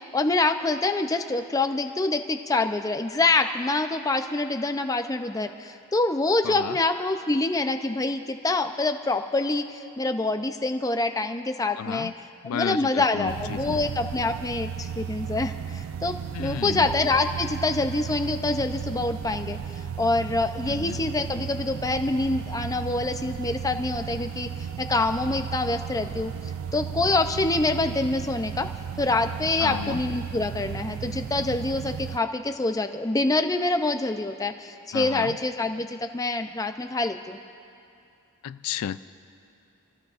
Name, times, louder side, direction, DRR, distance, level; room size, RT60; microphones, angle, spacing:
voice 1, 0.1-12.1 12.4-19.6 20.0-24.5 24.8-26.3 26.7-28.7 29.0-37.4, left 2 dB, 15° left, 7 dB, 0.5 m, -26 dB
voice 2, 6.4-6.8 11.8-12.1 12.4-13.8 16.3-16.9 20.7-21.0 29.6-30.0 34.9-35.4 38.4-39.0, left 8 dB, 85° left, 14 dB, 0.3 m, -32 dB
sound 1, 13.3-32.2, right 8 dB, 65° right, 0.3 m, -35 dB
29.5 x 14.5 x 2.5 m, 2.6 s
head